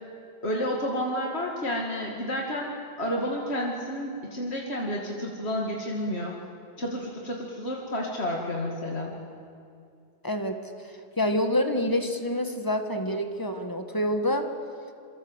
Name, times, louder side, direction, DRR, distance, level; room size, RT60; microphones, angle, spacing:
voice 1, 0.4-6.4 6.8-9.1, equal, 80° left, -1 dB, 2.7 m, -30 dB
voice 2, 10.2-10.6 11.2-14.5, left 1 dB, 20° left, 6 dB, 1.7 m, -27 dB
27.5 x 24.0 x 8.2 m, 2.5 s
omnidirectional pair, 1.1 m